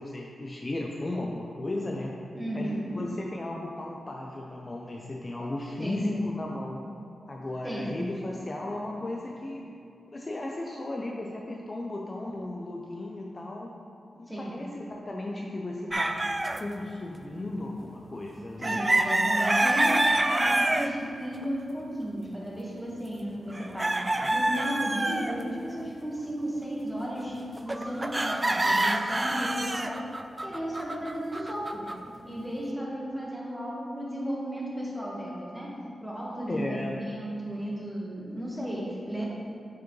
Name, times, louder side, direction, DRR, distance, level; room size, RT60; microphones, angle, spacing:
voice 1, 0.0-2.1 2.5-6.8 7.3-9.7 10.1-13.7 14.2-16.2 16.6-18.8 24.2-24.3 36.5-36.9, left 2 dB, 35° left, -1 dB, 0.6 m, -35 dB
voice 2, 2.3-3.0 5.8-6.1 7.6-8.0 14.3-14.6 18.6-30.1 30.4-31.9 32.2-39.3, equal, ahead, -4 dB, 1.5 m, -34 dB
sound 1, 15.9-16.6 18.6-20.9 21.4-21.5 23.5-25.4 27.6-32.1, right 1 dB, 25° right, 0.3 m, -26 dB
8.0 x 4.8 x 3.2 m, 2.5 s
cardioid pair, 75°, 0 cm